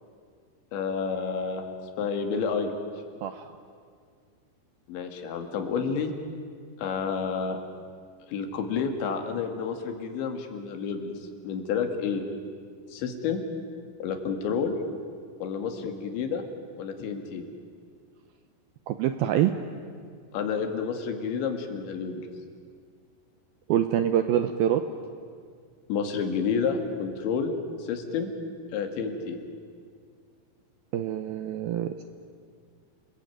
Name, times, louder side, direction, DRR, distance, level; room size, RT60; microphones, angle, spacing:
voice 1, 0.7-1.7 2.0-2.7 4.9-6.1 6.8-7.6 8.3-11.1 11.4-12.2 12.9-13.4 14.0-14.8 15.4-16.4 16.8-17.4 20.3-22.3 25.9-28.3 28.7-29.4, left 6 dB, 80° left, 5 dB, 4.5 m, -30 dB
voice 2, 3.2-3.5 18.9-19.5 23.7-24.8 30.9-32.0, right 11 dB, 80° right, 8 dB, 2.2 m, -25 dB
30.0 x 21.5 x 9.3 m, 2.1 s
omnidirectional pair, 5.2 m